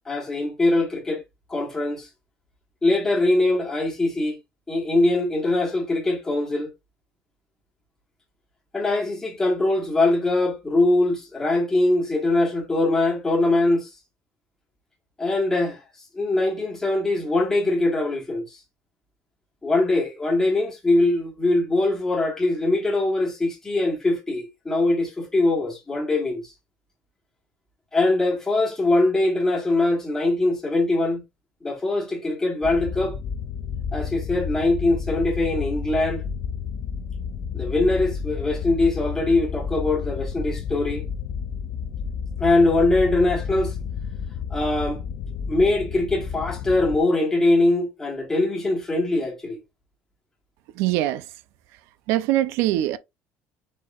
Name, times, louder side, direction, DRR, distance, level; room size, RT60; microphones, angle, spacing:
voice 1, 0.0-1.2 1.5-2.1 2.8-4.3 4.7-6.7 8.7-13.9 15.2-15.8 16.1-18.6 19.6-26.5 27.9-31.2 31.6-33.1 33.9-36.2 37.5-41.0 42.4-43.7 44.5-45.0 45.5-49.6, left 2 dB, 10° left, 1.4 m, -22 dB
sound 1, 32.6-47.0, left 6 dB, 45° left, 0.4 m, -31 dB
voice 2, 50.7-51.4 51.7-51.8 52.1-53.0, right 14 dB, 75° right, 0.4 m, -23 dB
4.6 x 4.4 x 2.3 m
cardioid pair, 160°, 4 cm